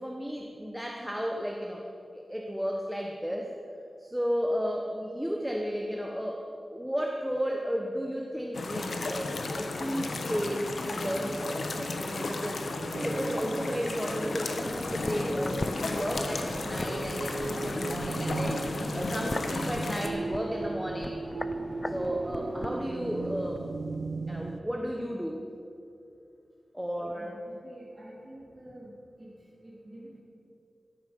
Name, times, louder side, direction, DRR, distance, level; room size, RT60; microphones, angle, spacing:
voice 1, 0.0-1.8 2.1-3.5 4.0-6.4 6.7-21.2 21.9-23.6 24.3-25.4 26.7-27.4, equal, 5° right, 1 dB, 1.1 m, -33 dB
sound 1, 8.5-20.1, left 2 dB, 80° left, 1.2 m, -34 dB
sound 2, 12.8-24.6, right 3 dB, 70° right, 0.6 m, -37 dB
sound 3, 14.6-23.7 23.9-24.0, left 2 dB, 30° left, 0.6 m, -39 dB
voice 2, 27.2-28.9 29.2-29.3 29.6-30.2, right 1 dB, 30° right, -8 dB, 3.5 m, -48 dB
13.5 x 13.5 x 5.4 m, 2.7 s
wide cardioid pair, 80°, 0 cm